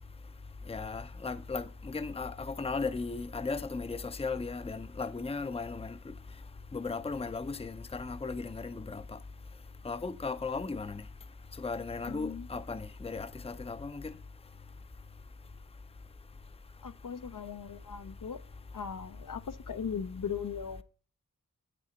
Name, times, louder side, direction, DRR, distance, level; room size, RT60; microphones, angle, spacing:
voice 1, 0.7-6.0 6.7-9.0 9.8-11.0 11.6-14.1, left 4 dB, 15° left, 0.6 m, -36 dB
voice 2, 12.1-12.5 16.8-18.4 18.7-20.8, left 7 dB, 65° left, 0.7 m, -38 dB
8.5 x 6.8 x 5.1 m
cardioid pair, 45°, 35 cm